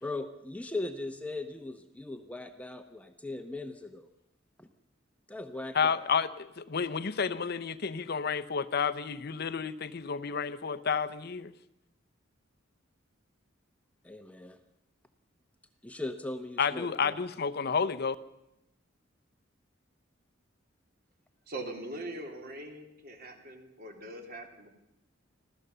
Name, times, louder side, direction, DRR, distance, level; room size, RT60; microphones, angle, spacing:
voice 1, 0.0-4.1 4.6-4.7 5.3-6.0 14.0-14.6 15.8-17.2, left 2 dB, 5° left, 7 dB, 0.9 m, -39 dB
voice 2, 5.7-11.5 16.6-18.2, left 6 dB, 55° left, 13 dB, 0.7 m, -30 dB
voice 3, 21.5-24.8, right 1 dB, 50° right, 3 dB, 3.3 m, -42 dB
26.0 x 16.0 x 6.8 m, 0.88 s
head